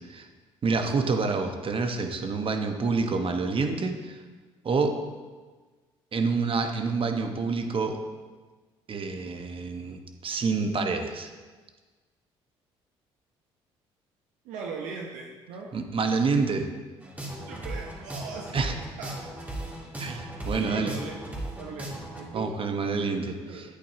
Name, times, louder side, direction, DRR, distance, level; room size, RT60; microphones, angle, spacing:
voice 1, 0.6-4.2 4.6-5.0 6.1-8.0 8.9-11.3 15.7-16.7 18.5-18.7 20.0-21.0 22.3-23.3, right 4 dB, 45° right, 5 dB, 1.2 m, -27 dB
voice 2, 14.4-15.7 17.5-19.3 20.6-21.2 21.6-22.5 23.0-23.6, right 5 dB, 80° right, -1 dB, 0.9 m, -39 dB
sound 1, 17.0-22.2, right 1 dB, 10° right, 2.4 m, -37 dB
10.0 x 8.6 x 2.8 m, 1.4 s
hypercardioid pair, 60°, 13 cm